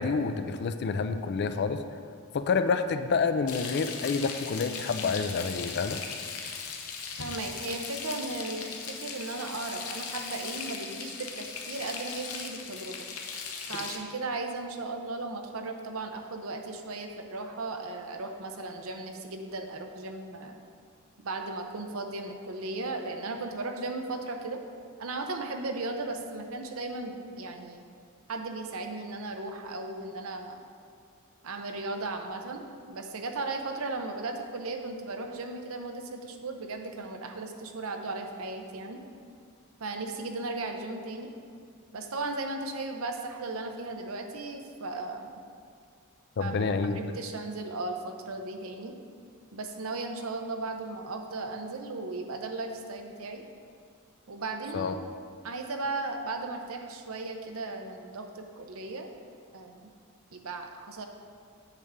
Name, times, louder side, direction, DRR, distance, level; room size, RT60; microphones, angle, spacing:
voice 1, 0.0-1.8 2.3-6.0 46.4-47.0 54.7-55.0, left 4 dB, 50° left, 9 dB, 0.4 m, -28 dB
Frying (food), 3.5-14.0, left 5 dB, 90° left, 0.8 m, -38 dB
voice 2, 7.2-13.0 13.7-20.6 21.2-24.6 25.0-27.8 28.3-30.6 31.4-39.0 39.8-41.3 41.9-45.4 46.4-46.6 46.9-49.0 49.5-53.4 54.3-55.1 55.4-59.1 59.5-59.9 60.3-61.1, right 2 dB, 70° right, 4 dB, 0.7 m, -36 dB
8.2 x 3.6 x 6.7 m, 2.2 s
head